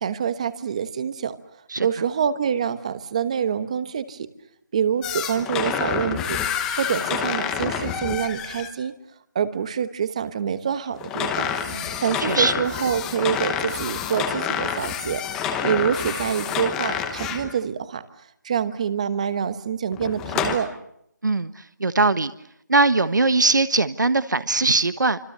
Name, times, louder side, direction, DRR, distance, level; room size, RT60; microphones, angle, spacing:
voice 1, 0.0-1.4 1.8-4.3 4.7-6.4 6.8-9.0 9.3-11.5 12.0-15.2 15.6-18.0 18.4-20.7, right 8 dB, 20° right, 14 dB, 1.1 m, -26 dB
sound 1, 5.0-8.7 11.0-17.5 19.9-20.6, left 7 dB, 5° left, 1.0 m, -28 dB
voice 2, 21.2-22.3 22.7-25.2, right 3 dB, 75° right, 13 dB, 1.3 m, -21 dB
27.5 x 26.0 x 6.8 m, 0.74 s
figure-of-eight pair, 170°, 10 cm